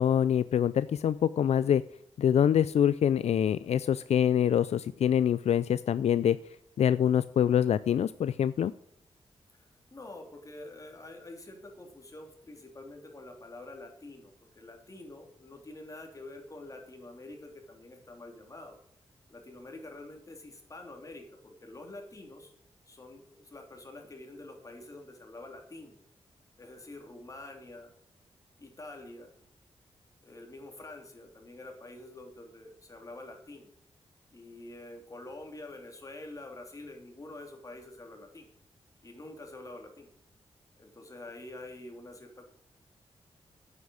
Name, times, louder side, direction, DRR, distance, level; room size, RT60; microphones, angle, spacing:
voice 1, 0.0-1.8 2.2-6.4 6.8-8.7, left 9 dB, 80° left, 15 dB, 0.4 m, -25 dB
voice 2, 9.5-18.8 19.3-22.5 22.9-26.0 26.6-27.9 28.6-29.3 30.2-33.7 34.3-38.5 39.0-40.1 40.8-42.5, left 2 dB, 30° left, 2 dB, 3.1 m, -47 dB
9.6 x 8.4 x 6.3 m, 0.71 s
wide cardioid pair, 105°, 11 cm